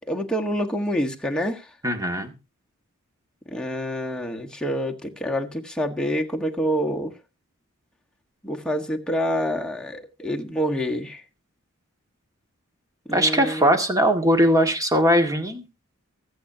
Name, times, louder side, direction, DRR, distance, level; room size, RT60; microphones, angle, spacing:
voice 1, 0.1-1.7 3.5-7.1 8.4-11.2 13.0-13.8, equal, 5° left, 1.5 m, -27 dB
voice 2, 1.8-2.3 13.1-15.6, equal, 15° right, 1.9 m, -20 dB
23.5 x 7.9 x 2.8 m
head